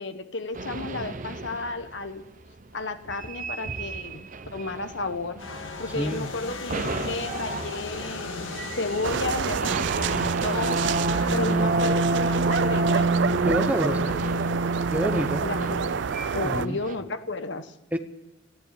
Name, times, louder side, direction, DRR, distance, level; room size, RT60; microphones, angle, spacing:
voice 1, 0.0-2.3 2.7-5.4 5.8-8.5 8.8-10.8 11.3-13.1 13.6-14.6 15.4-16.0 16.3-17.7, left 3 dB, 65° left, 9 dB, 1.3 m, -33 dB
sound 1, 0.5-1.8 3.1-5.6 5.9-6.3 6.7-16.9, right 2 dB, 40° right, 0.8 m, -29 dB
sound 2, 5.4-11.8, left 3 dB, 90° left, 1.9 m, -38 dB
voice 2, 6.0-6.3 13.4-14.1 14.9-15.4 16.4-16.8 17.9-18.0, equal, 10° right, 8 dB, 0.8 m, -27 dB
sound 3, 9.0-16.7, right 6 dB, 65° right, 0.4 m, -28 dB
14.5 x 10.5 x 9.1 m, 0.98 s
head